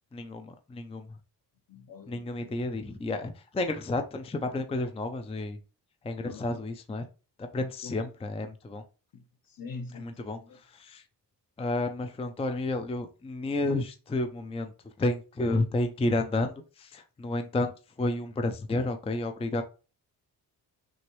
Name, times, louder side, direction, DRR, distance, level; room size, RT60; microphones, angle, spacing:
voice 1, 0.1-1.1 2.1-5.6 6.0-7.0 7.4-8.8 9.9-11.0 11.6-14.7 15.0-17.7 18.0-19.6, left 2 dB, 15° left, 0.5 m, -31 dB
voice 2, 1.7-2.6 6.2-6.5 7.8-8.1 9.1-10.6, left 4 dB, 55° left, 1.0 m, -44 dB
6.2 x 2.5 x 3.1 m
cardioid pair, 95°, 42 cm